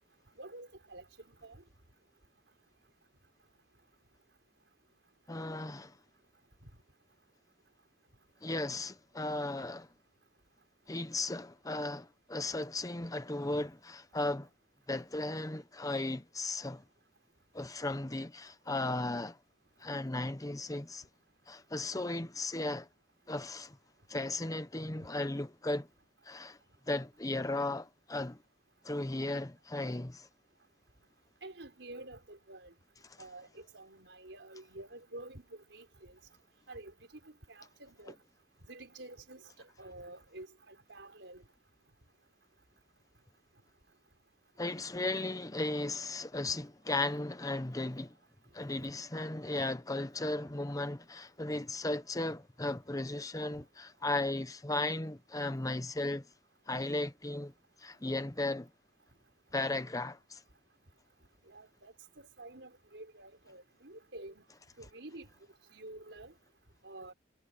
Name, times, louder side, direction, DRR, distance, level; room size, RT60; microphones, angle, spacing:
voice 1, 0.4-1.6 31.4-32.7 33.2-36.2 36.7-38.2 38.6-41.4 48.8-48.9 61.5-64.4 64.8-66.3 66.8-67.1, right 2 dB, 75° right, 4.8 m, -50 dB
voice 2, 5.3-6.0 8.4-9.9 10.9-14.5 14.9-16.8 17.5-19.4 19.8-21.1 21.5-22.9 23.3-23.8 24.1-25.9 26.2-26.6 26.9-28.4 28.8-30.3 44.6-48.2 48.5-56.3 56.7-57.5 57.8-58.7 59.5-60.4, left 2 dB, 20° left, 0.9 m, -36 dB
head